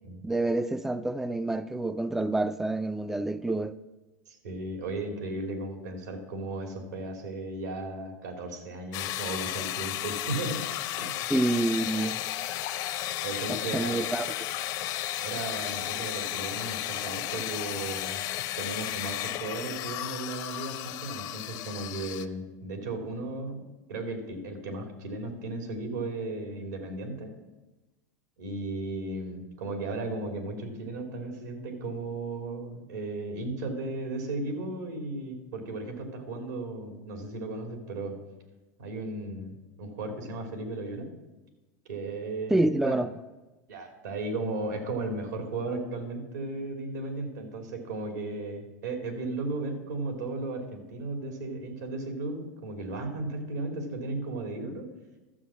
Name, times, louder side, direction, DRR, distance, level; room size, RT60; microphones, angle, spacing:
voice 1, 0.2-3.7 11.3-12.2 13.5-14.3 42.5-43.1, right 2 dB, 5° right, 0.4 m, -27 dB
voice 2, 4.3-10.6 11.0-11.2 13.2-14.0 15.1-18.2 18.6-23.6 23.9-27.3 28.4-38.2 38.8-41.1 41.9-43.0 43.7-54.9, right 2 dB, 85° right, 3.0 m, -35 dB
sound 1, 8.9-22.3, left 13 dB, 50° left, 0.8 m, -34 dB
12.5 x 7.4 x 6.2 m
hypercardioid pair, 110°, 9 cm